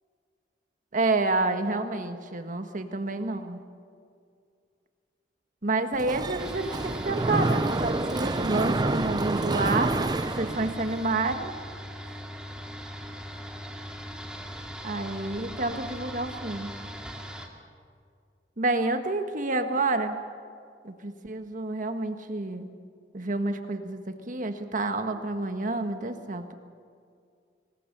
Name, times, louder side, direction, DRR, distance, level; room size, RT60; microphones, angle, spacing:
voice 1, 0.9-3.6 5.6-11.5 14.8-16.7 18.6-20.2 20.8-22.7 23.1-26.5, right 2 dB, 50° right, 7 dB, 1.5 m, -29 dB
Mechanisms, 5.9-11.1, right 2 dB, 25° right, 0.5 m, -28 dB
sound 1, 6.4-17.5, equal, 5° right, 2.2 m, -40 dB
25.0 x 20.0 x 6.8 m, 2.2 s
head